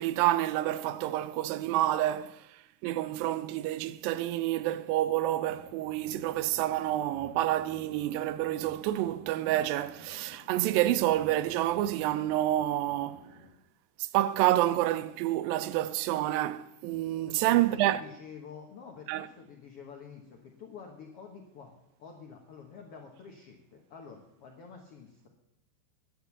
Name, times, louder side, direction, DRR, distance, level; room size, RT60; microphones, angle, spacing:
voice 1, 0.0-2.4 2.8-13.2 14.1-18.0 19.1-19.3, right 14 dB, 80° right, 2.1 m, -28 dB
sound 1, 5.5-13.5, equal, 45° right, 5.9 m, -55 dB
voice 2, 17.3-21.7 22.0-25.3, left 6 dB, 70° left, 1.4 m, -48 dB
10.5 x 10.0 x 7.1 m
omnidirectional pair, 4.5 m